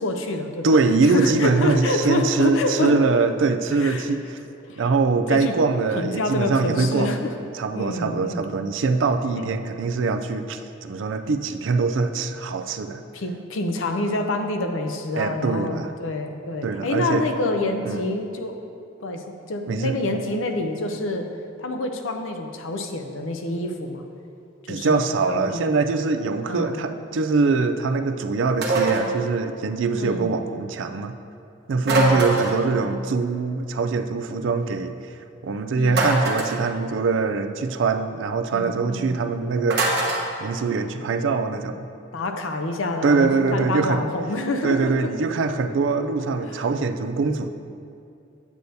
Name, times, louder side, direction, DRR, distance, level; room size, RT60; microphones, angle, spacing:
voice 1, 0.0-3.0 3.8-4.1 4.7-4.8 5.3-5.6 5.9-7.4 7.7-8.4 9.4-9.5 13.1-18.6 19.0-21.3 21.6-24.0 24.6-25.6 26.5-26.8 29.9-30.3 31.9-32.3 35.8-36.1 38.5-39.2 42.1-45.1 46.5-46.6, left 2 dB, 85° left, 5 dB, 0.6 m, -27 dB
voice 2, 0.6-4.4 4.8-7.1 7.5-13.0 15.2-15.9 16.6-17.3 17.8-18.0 19.7-20.0 24.7-31.2 31.7-35.0 35.4-40.1 40.4-41.9 43.0-44.1 44.6-47.5, right 4 dB, 75° right, 9 dB, 0.4 m, -23 dB
sound 1, 28.6-29.1 31.8-32.7 35.9-36.6 39.7-40.3, right 2 dB, 55° right, 1.0 m, -22 dB
8.3 x 7.8 x 2.7 m, 2.6 s
head